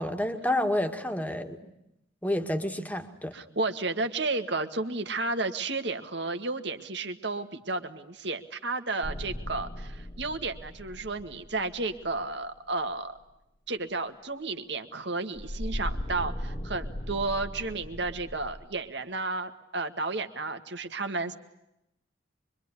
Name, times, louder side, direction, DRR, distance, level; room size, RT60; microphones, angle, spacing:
voice 1, 0.0-1.7 2.2-3.4, left 1 dB, 10° left, 6 dB, 2.0 m, -29 dB
voice 2, 3.3-13.2 13.7-21.3, right 3 dB, 65° right, 7 dB, 2.0 m, -32 dB
sound 1, 9.0-12.6 15.4-18.7, equal, 25° left, 1.1 m, -38 dB
25.0 x 24.0 x 9.9 m, 0.84 s
head